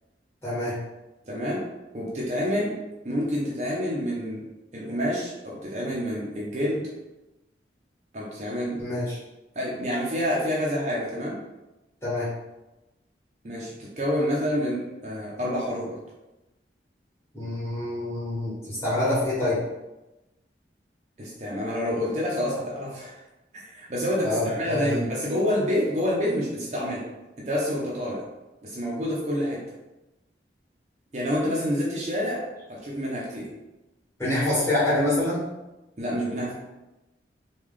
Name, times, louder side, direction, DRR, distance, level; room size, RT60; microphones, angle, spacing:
voice 1, 0.4-0.7 8.8-9.2 12.0-12.3 17.3-19.6 24.2-25.0 34.2-35.4, left 1 dB, 15° left, -10 dB, 1.4 m, -26 dB
voice 2, 1.3-1.7 1.9-2.8 3.0-4.5 4.7-6.9 8.1-8.8 9.5-11.4 13.4-16.0 21.2-23.2 23.5-27.0 27.4-28.2 28.6-29.6 31.1-32.4 32.7-33.5 36.0-36.5, equal, 40° right, -4 dB, 0.6 m, -28 dB
3.2 x 2.3 x 3.6 m, 1.0 s
head